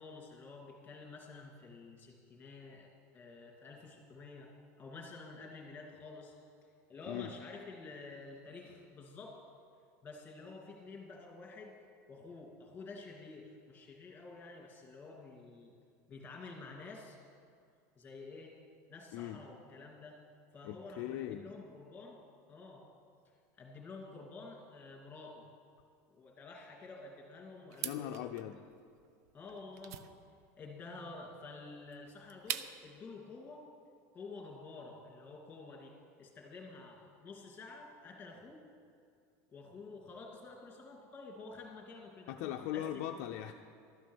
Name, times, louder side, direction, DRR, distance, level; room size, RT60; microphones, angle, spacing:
voice 1, 0.0-2.9 3.1-4.5 4.8-6.3 6.9-9.4 10.0-11.7 12.1-15.7 16.1-17.2 18.0-18.5 18.9-20.1 20.5-22.2 22.5-22.8 23.6-25.5 26.1-28.4 29.3-30.1 30.5-33.7 34.1-38.6 39.5-42.4 42.7-42.9, left 3 dB, 20° left, 0 dB, 2.4 m, -50 dB
voice 2, 20.6-21.4 27.8-28.6 42.3-43.5, left 12 dB, 55° left, 4 dB, 0.5 m, -39 dB
sound 1, 27.7-33.0, right 11 dB, 80° right, 0.6 m, -44 dB
12.5 x 9.3 x 6.2 m, 2.3 s
supercardioid pair, 160°, 9 cm